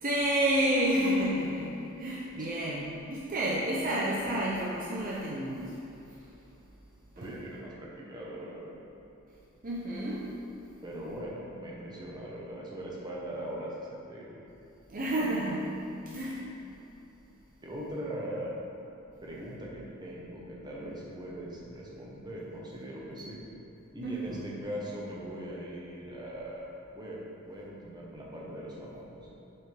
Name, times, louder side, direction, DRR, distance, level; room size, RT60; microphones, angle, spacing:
voice 1, 0.0-5.7 7.2-7.3 9.6-10.3 14.9-16.5 24.0-24.5, right 1 dB, 40° right, -5 dB, 0.7 m, -30 dB
voice 2, 7.2-8.7 10.8-14.4 17.6-18.5 19.2-23.4 23.9-26.7 26.9-27.2 27.5-29.3, right 1 dB, 20° right, -4 dB, 1.0 m, -40 dB
7.0 x 5.7 x 3.4 m, 3.0 s
head